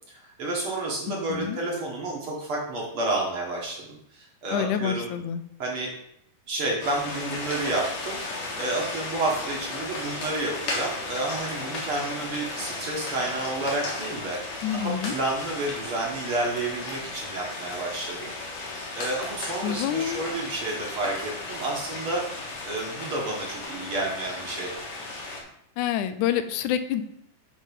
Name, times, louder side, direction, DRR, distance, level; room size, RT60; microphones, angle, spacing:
voice 1, 0.1-5.1 5.6-5.9 6.5-8.2 8.6-14.4 14.7-18.3 18.9-22.2 22.6-24.7, right 2 dB, 50° right, -2 dB, 2.0 m, -30 dB
voice 2, 1.1-1.6 4.5-5.4 14.6-15.2 19.6-20.2 25.8-27.0, left 10 dB, 85° left, 10 dB, 2.0 m, -27 dB
sound 1, 6.8-25.4, left 2 dB, 65° left, 2.7 m, -35 dB
10.0 x 3.7 x 5.3 m, 0.74 s
omnidirectional pair, 3.5 m